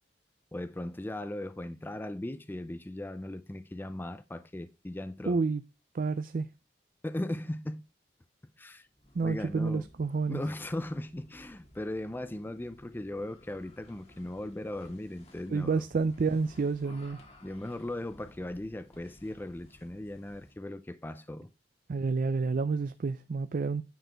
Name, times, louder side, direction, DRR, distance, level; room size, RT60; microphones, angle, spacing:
voice 1, 0.5-5.4 7.0-7.8 8.6-8.9 9.2-9.8 10.3-15.8 17.4-21.5, left 1 dB, 10° left, 0.4 m, -38 dB
voice 2, 5.3-5.6 5.9-6.5 9.1-10.4 15.5-17.2 21.9-23.8, right 4 dB, 50° right, 0.4 m, -29 dB
sound 1, 8.9-20.7, left 1 dB, 35° left, 1.9 m, -56 dB
9.4 x 4.2 x 4.4 m
head